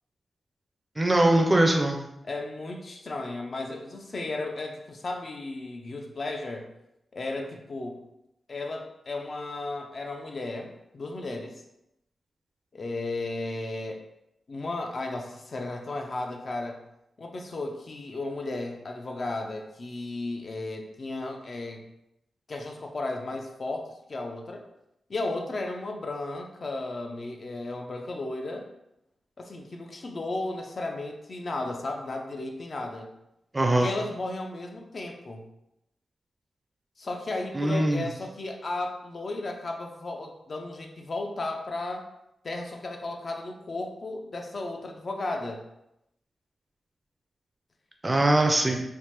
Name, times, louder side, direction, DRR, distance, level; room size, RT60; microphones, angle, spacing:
voice 1, 1.0-2.0 33.5-33.9 37.5-38.1 48.0-48.8, right 1 dB, 20° right, 2 dB, 0.4 m, -22 dB
voice 2, 2.2-6.7 7.1-8.0 8.5-11.6 12.7-14.0 14.5-16.8 17.2-21.8 22.5-24.6 25.1-28.7 29.4-33.1 33.8-35.4 37.0-42.1 42.4-45.6, left 2 dB, 45° left, 3 dB, 0.4 m, -34 dB
3.3 x 2.1 x 2.9 m, 0.84 s
wide cardioid pair, 110°, 0 cm